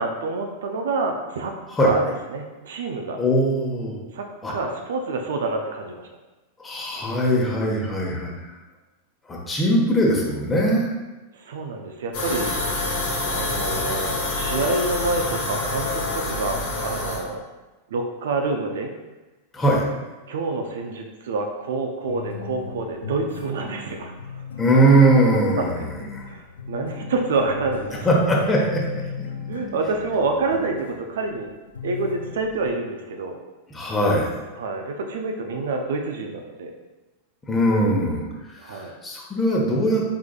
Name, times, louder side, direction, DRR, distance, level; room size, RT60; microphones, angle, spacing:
voice 1, 0.0-1.5 1.8-2.0 2.3-3.2 4.1-6.1 11.3-12.9 13.3-17.4 17.9-18.9 20.3-24.3 25.6-25.8 26.2-27.9 29.5-31.5 31.8-33.4 34.6-36.7 38.6-38.9, right 3 dB, 60° right, 3 dB, 0.5 m, -27 dB
voice 2, 3.2-3.9 4.4-4.5 6.6-8.6 9.3-10.9 19.5-19.8 24.6-26.3 28.0-29.0 33.7-34.3 37.5-40.0, right 1 dB, 15° left, -3 dB, 1.1 m, -21 dB
sound 1, 12.1-17.2, left 2 dB, 50° left, 1.3 m, -26 dB
sound 2, 22.1-31.3 31.7-32.7, left 6 dB, 70° left, 0.5 m, -37 dB
4.8 x 4.8 x 2.3 m, 1.1 s
figure-of-eight pair, 90°, 0 cm